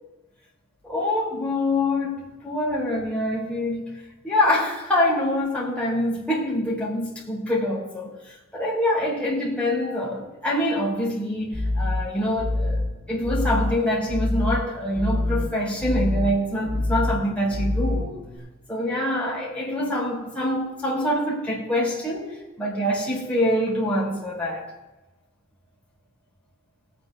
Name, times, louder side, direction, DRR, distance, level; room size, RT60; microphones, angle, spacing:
voice 1, 0.8-18.2 18.7-24.7, left 1 dB, 5° left, 3.8 m, -25 dB
sound 1, 11.5-18.4, left 2 dB, 40° right, 4.8 m, -27 dB
20.5 x 9.6 x 3.6 m
head